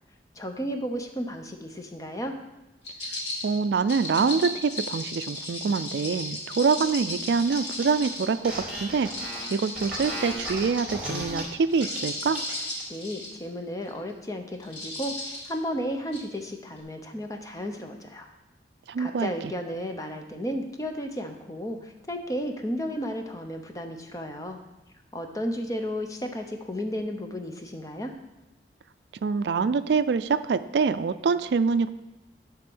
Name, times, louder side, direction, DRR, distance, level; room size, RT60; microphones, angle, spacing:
voice 1, 0.4-2.3 12.9-18.3 19.0-24.6 25.1-28.1, equal, 20° left, 5 dB, 0.7 m, -33 dB
sound 1, 2.8-8.4 9.0-10.9 11.6-13.4 13.9-14.1 14.6-15.5 16.1-16.2, left 1 dB, 80° left, 2.2 m, -35 dB
voice 2, 3.4-9.1 9.5-12.4 18.9-19.5 29.2-31.9, right 5 dB, 75° right, 13 dB, 0.4 m, -25 dB
sound 2, 7.5-7.6 7.8-11.4 11.8-12.0 12.3-12.8, equal, 5° right, 3.0 m, -35 dB
11.0 x 3.7 x 6.1 m, 1.0 s
head